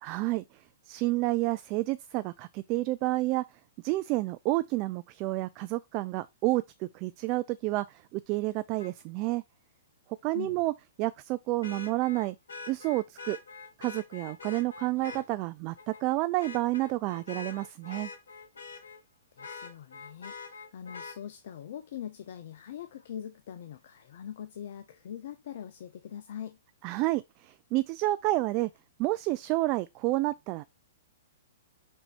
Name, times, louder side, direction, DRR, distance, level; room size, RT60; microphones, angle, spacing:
voice 1, 0.0-0.4 0.9-3.4 3.8-9.4 10.2-10.7 11.0-12.4 12.7-13.4 13.8-18.1 26.8-28.7 29.0-30.6, right 19 dB, 40° right, 0.3 m, -30 dB
Vehicle horn car horn honking, 8.8-8.9 11.6-15.3 15.8-16.0 16.4-19.0 19.4-21.2 23.0-23.1, left 4 dB, 75° left, 1.3 m, -44 dB
voice 2, 19.3-26.6, left 9 dB, 60° left, 0.6 m, -42 dB
5.5 x 4.0 x 4.3 m
hypercardioid pair, 115°, 0 cm